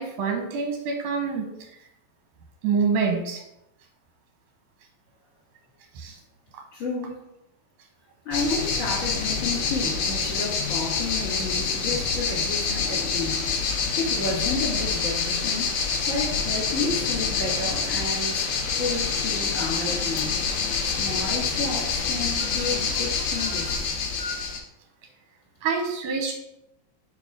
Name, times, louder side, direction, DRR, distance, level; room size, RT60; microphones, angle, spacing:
voice 1, 0.0-1.4 2.6-3.4 6.0-6.2 20.8-21.0 22.5-22.7 23.4-23.7 24.2-24.4 25.6-26.4, right 5 dB, 70° right, 2 dB, 2.0 m, -27 dB
voice 2, 6.7-7.3 8.2-13.7 13.9-15.7 16.1-18.4 18.8-20.3 20.8-23.9, left 3 dB, 35° left, -6 dB, 1.4 m, -31 dB
sound 1, 8.3-24.6, left 5 dB, 85° left, 1.4 m, -26 dB
4.9 x 4.5 x 4.9 m, 0.84 s
omnidirectional pair, 4.2 m